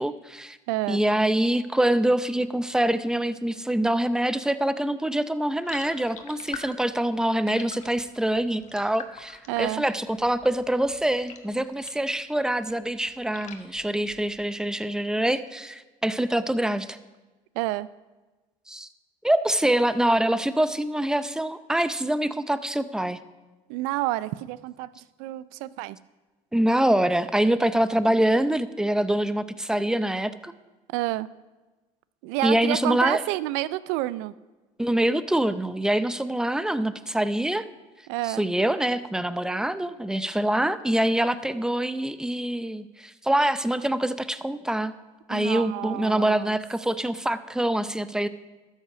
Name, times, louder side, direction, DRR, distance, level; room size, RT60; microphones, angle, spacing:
voice 1, 0.0-0.6 0.9-17.0 18.7-18.9 19.2-23.2 26.5-30.5 32.4-33.2 34.8-37.7 38.2-44.9 45.3-48.3, right 1 dB, 5° right, 13 dB, 0.6 m, -25 dB
voice 2, 0.7-1.0 9.5-9.8 17.6-17.9 23.7-26.0 30.9-31.3 32.2-34.3 38.1-38.4 45.3-46.6, right 17 dB, 80° right, 18 dB, 0.4 m, -29 dB
sound 1, 5.6-12.2 12.5-14.6, left 6 dB, 50° left, 1.2 m, -45 dB
12.5 x 8.3 x 4.9 m, 1.2 s
supercardioid pair, 75°, 16 cm